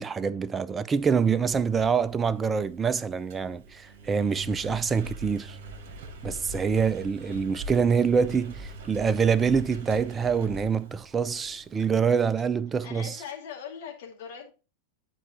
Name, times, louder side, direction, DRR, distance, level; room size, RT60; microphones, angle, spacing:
voice 1, 0.0-5.6 6.2-13.2, right 6 dB, 20° right, 0.4 m, -25 dB
Engine, 1.0-11.8, right 1 dB, 50° right, 1.4 m, -43 dB
voice 2, 12.8-14.5, left 7 dB, 50° left, 2.3 m, -41 dB
11.0 x 4.7 x 2.9 m
figure-of-eight pair, 90°, 0 cm